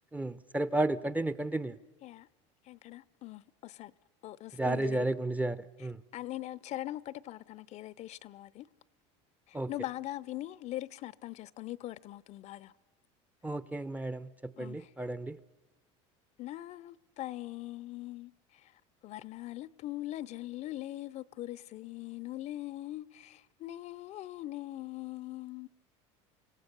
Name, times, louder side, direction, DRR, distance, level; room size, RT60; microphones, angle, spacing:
voice 1, 0.1-1.8 4.6-6.0 9.5-9.7 13.4-14.3 14.6-15.4, right 2 dB, 10° right, 0.6 m, -32 dB
voice 2, 2.6-3.9 4.2-5.1 5.8-5.9 6.1-8.7 9.5-12.7 14.6-14.9 16.4-25.7, left 15 dB, 50° left, 0.6 m, -41 dB
26.0 x 17.0 x 6.8 m
supercardioid pair, 115°, 15 cm